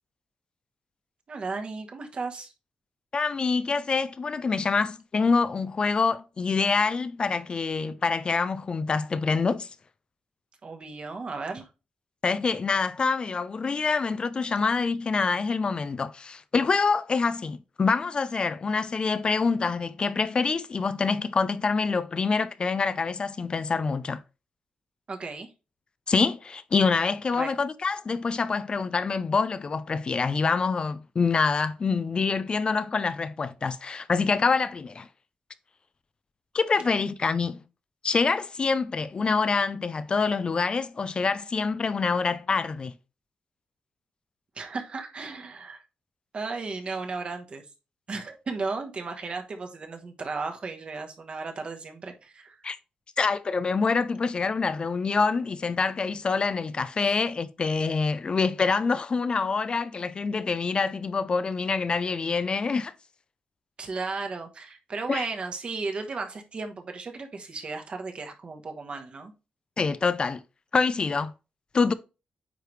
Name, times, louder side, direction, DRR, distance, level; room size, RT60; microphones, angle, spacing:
voice 1, 1.3-2.5 10.6-11.7 25.1-25.5 27.3-27.5 44.5-45.8 46.3-47.7 48.1-52.6 57.0-57.1 63.8-69.3, right 4 dB, 40° right, 1.2 m, -35 dB
voice 2, 3.1-9.7 12.2-24.2 26.1-35.1 36.5-37.6 38.0-42.9 52.6-52.8 53.2-62.9 65.1-65.3 69.8-70.4 70.7-71.3 71.7-71.9, left 4 dB, 35° left, 0.3 m, -26 dB
9.2 x 3.3 x 3.2 m
wide cardioid pair, 125°, 3 cm